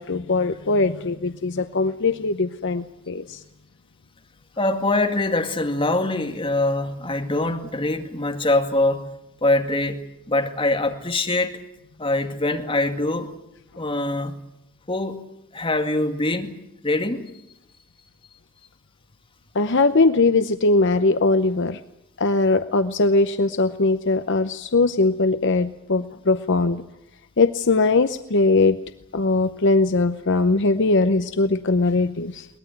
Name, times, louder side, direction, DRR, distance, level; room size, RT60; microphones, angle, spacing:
voice 1, 0.0-3.4 19.5-21.8 22.2-26.8 27.4-28.8 29.1-32.5, left 3 dB, 55° left, 10 dB, 0.8 m, -20 dB
voice 2, 4.6-9.0 9.4-11.6 12.0-13.3 13.8-14.4 14.9-15.2 15.5-16.6 16.8-17.3, left 2 dB, 25° left, 5 dB, 2.2 m, -23 dB
22.5 x 19.5 x 9.2 m, 0.82 s
head